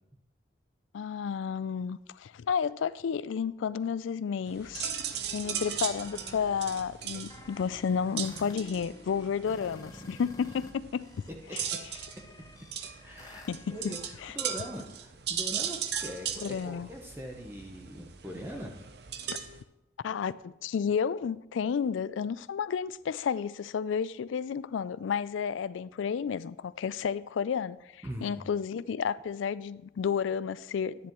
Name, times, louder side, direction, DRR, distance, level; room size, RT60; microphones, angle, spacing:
voice 1, 0.9-4.9 5.3-11.1 11.5-11.6 13.5-14.4 16.4-16.9 20.0-31.1, left 7 dB, 90° left, 0.4 m, -32 dB
sound 1, 4.5-10.7 11.0-14.3, left 1 dB, 20° left, 0.5 m, -50 dB
sound 2, 4.5-19.6, right 8 dB, 60° right, 0.6 m, -38 dB
voice 2, 13.0-18.7 28.0-28.5, equal, 10° right, 0.8 m, -42 dB
10.5 x 10.0 x 3.0 m
head